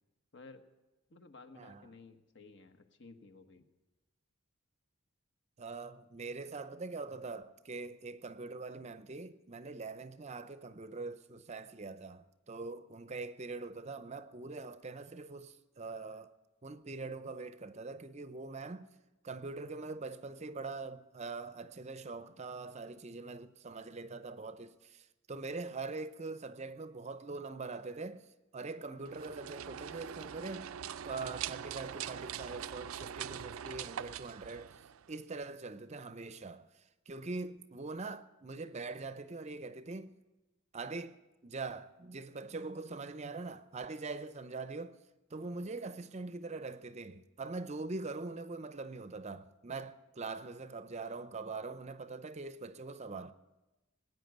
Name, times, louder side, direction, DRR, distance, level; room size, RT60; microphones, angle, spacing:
voice 1, 0.3-0.7 1.1-3.7, left 3 dB, 55° left, 1.3 m, -55 dB
voice 2, 1.5-1.9 5.6-16.3 16.6-18.9 19.2-30.7 31.0-34.8 35.1-40.2 40.7-45.0 45.3-53.3, right 3 dB, 30° right, 0.6 m, -43 dB
sound 1, 29.0-35.2, right 9 dB, 80° right, 0.4 m, -43 dB
19.0 x 9.4 x 7.9 m
head